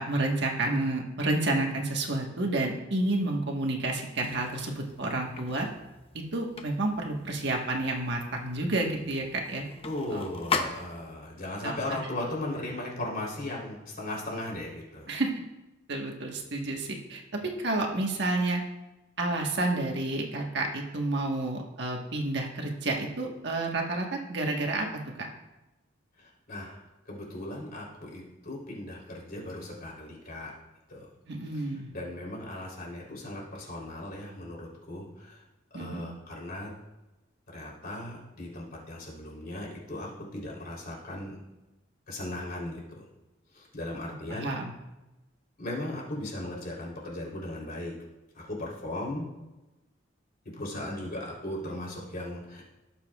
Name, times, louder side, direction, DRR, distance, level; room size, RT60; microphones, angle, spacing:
voice 1, 0.0-5.7 6.1-9.6 10.1-10.2 11.6-11.7 15.1-15.3 15.9-18.6 19.2-24.9 25.2-25.3 31.3-31.9 35.7-36.1 44.0-44.7, right 2 dB, 65° right, 1 dB, 1.5 m, -30 dB
sound 1, 4.2-11.3, left 4 dB, 30° left, 0.8 m, -39 dB
voice 2, 9.8-15.1 26.2-26.8 27.1-30.5 30.9-31.1 31.9-35.4 35.7-36.7 37.5-41.3 42.1-43.0 43.5-44.5 45.6-47.9 48.3-49.2 50.6-52.6, left 1 dB, 50° left, -3 dB, 3.5 m, -37 dB
18.0 x 7.2 x 2.4 m, 1.0 s
head